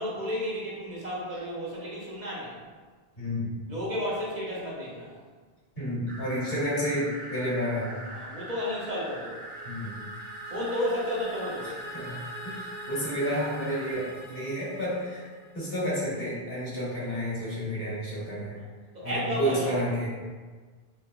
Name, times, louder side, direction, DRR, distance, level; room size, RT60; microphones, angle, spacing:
voice 1, 0.0-2.6 3.7-5.1 8.1-9.4 10.5-11.8 16.9-17.3 18.5-18.6 18.9-19.8, left 1 dB, 50° right, -6 dB, 0.8 m, -32 dB
voice 2, 3.2-3.5 5.7-8.0 9.6-10.0 11.9-12.2 12.4-15.3 15.5-18.6 19.0-20.1, equal, 65° left, -8 dB, 1.4 m, -30 dB
sound 1, 6.1-13.9, right 1 dB, 5° left, 0.7 m, -42 dB
sound 2, 8.9-15.8, equal, 90° left, 1.2 m, -45 dB
3.5 x 2.8 x 2.2 m, 1.4 s
omnidirectional pair, 1.0 m